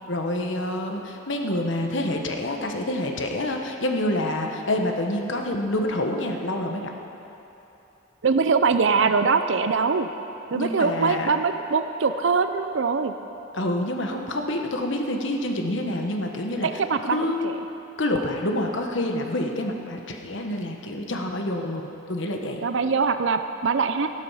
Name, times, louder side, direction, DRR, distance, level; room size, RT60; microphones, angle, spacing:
voice 1, 0.1-6.9 10.5-11.3 13.5-17.5 18.0-22.7, left 1 dB, 70° left, 3 dB, 1.2 m, -27 dB
voice 2, 8.2-10.1 10.5-13.1 16.6-17.5 22.6-24.1, right 5 dB, 70° right, 9 dB, 0.5 m, -23 dB
14.5 x 12.0 x 5.6 m, 3.0 s
head